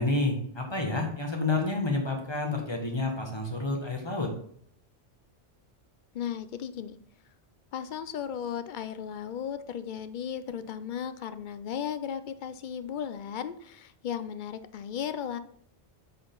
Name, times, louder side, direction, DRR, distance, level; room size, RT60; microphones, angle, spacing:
voice 1, 0.0-4.3, left 2 dB, 25° left, 1 dB, 1.5 m, -29 dB
voice 2, 6.1-7.0 7.7-15.4, left 8 dB, 55° left, 12 dB, 0.6 m, -35 dB
7.6 x 4.5 x 3.9 m, 0.62 s
omnidirectional pair, 1.2 m